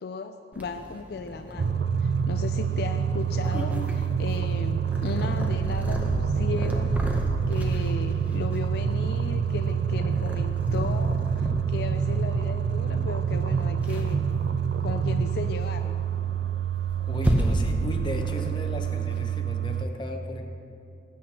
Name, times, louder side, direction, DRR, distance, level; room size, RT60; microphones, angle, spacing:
voice 1, 0.0-14.3 14.8-16.0, left 4 dB, 60° left, 7 dB, 0.4 m, -36 dB
Purr, 0.5-19.2, equal, 10° right, 0.8 m, -35 dB
sound 1, 1.6-19.9, right 7 dB, 65° right, 0.4 m, -27 dB
voice 2, 17.1-20.4, left 1 dB, 25° left, 3 dB, 0.8 m, -35 dB
18.5 x 8.5 x 2.9 m, 2.6 s
head